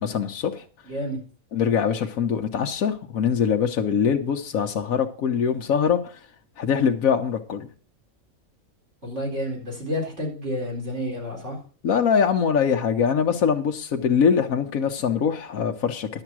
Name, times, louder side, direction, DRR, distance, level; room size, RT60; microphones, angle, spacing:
voice 1, 0.0-0.6 1.5-6.1 6.6-7.7 11.8-16.2, left 7 dB, 80° left, 1.3 m, -23 dB
voice 2, 0.9-1.2 9.0-11.6, equal, 55° right, 4.5 m, -30 dB
11.0 x 7.9 x 6.1 m
omnidirectional pair, 1.4 m